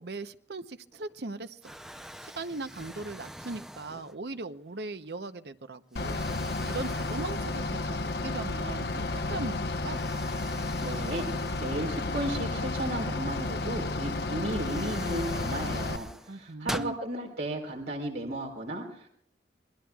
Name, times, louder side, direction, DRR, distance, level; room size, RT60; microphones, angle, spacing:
voice 1, 0.0-1.8 2.2-6.2 6.6-10.0 16.3-17.0, right 3 dB, 65° right, 11 dB, 0.8 m, -39 dB
Explosion, 0.9-1.3 1.6-4.4 5.0-5.2 5.9-8.2 8.5-8.6 9.9-12.5 13.9-14.0 14.5-17.0, equal, 5° right, 0.6 m, -44 dB
Bus / Idling, 6.0-16.0, left 2 dB, 65° left, 1.0 m, -32 dB
voice 2, 10.8-19.1, right 1 dB, 85° right, -1 dB, 4.3 m, -34 dB
27.5 x 21.5 x 2.4 m, 0.68 s
head